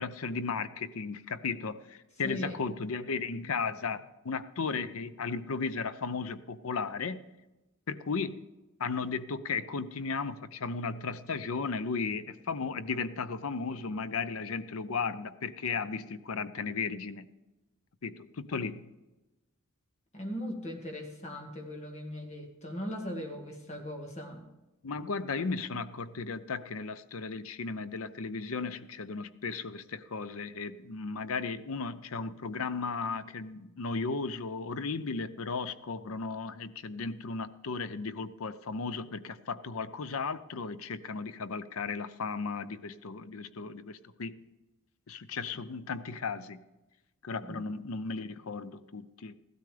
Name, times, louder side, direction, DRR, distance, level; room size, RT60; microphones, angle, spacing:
voice 1, 0.0-7.2 7.9-8.4 8.8-17.3 18.0-18.8 24.8-44.3 45.1-46.6 47.2-49.3, left 4 dB, 75° left, 0.6 m, -35 dB
voice 2, 2.2-2.5 20.1-24.5 47.4-47.7, equal, 30° left, 1.8 m, -39 dB
15.0 x 13.0 x 3.4 m
head